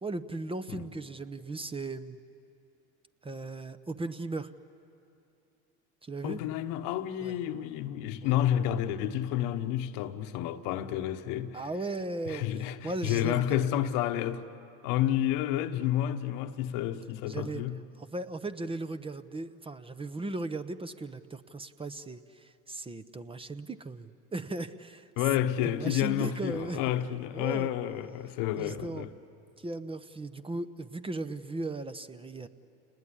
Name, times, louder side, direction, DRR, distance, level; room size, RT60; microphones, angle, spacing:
voice 1, 0.0-2.2 3.2-4.5 6.0-6.4 7.2-7.4 8.2-8.4 11.5-13.8 17.3-17.6 18.0-25.1 25.6-26.8 27.3-27.7 28.6-29.1 29.6-32.5, right 2 dB, 15° right, 0.8 m, -37 dB
voice 2, 6.2-11.6 12.3-14.4 14.8-17.8 25.2-29.1, left 11 dB, 70° left, 1.2 m, -30 dB
28.5 x 20.0 x 9.9 m
supercardioid pair, 90°, 34 cm